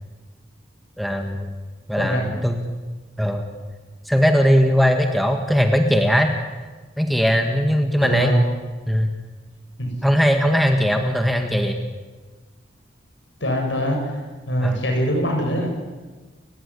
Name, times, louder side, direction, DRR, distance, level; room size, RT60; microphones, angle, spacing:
voice 1, 1.0-1.5 1.9-2.6 3.2-3.5 4.1-6.3 7.0-8.4 8.9-9.1 10.0-11.8 14.6-14.8, equal, ahead, 4 dB, 1.7 m, -19 dB
voice 2, 2.0-2.3 8.0-8.4 9.8-9.9 13.4-14.2 14.5-15.7, equal, 75° left, 2 dB, 7.5 m, -23 dB
30.0 x 15.5 x 9.9 m, 1.3 s
head